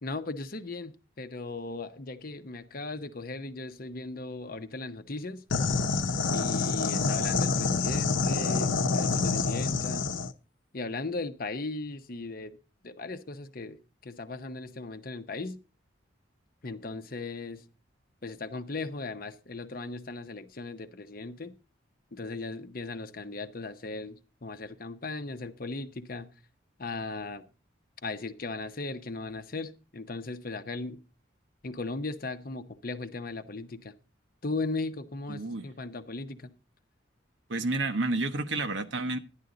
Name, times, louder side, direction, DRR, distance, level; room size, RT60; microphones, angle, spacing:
voice 1, 0.0-5.4 6.3-10.1 10.7-12.6 12.8-15.6 16.6-17.6 18.2-21.5 22.1-26.3 26.8-27.5 28.0-31.0 31.6-33.9 34.4-36.5, left 3 dB, 50° left, 0.8 m, -37 dB
sound 1, 5.5-10.3, left 4 dB, 85° left, 0.7 m, -27 dB
voice 2, 35.3-35.7 37.5-39.2, right 2 dB, 75° right, 1.0 m, -30 dB
11.0 x 10.5 x 3.9 m
head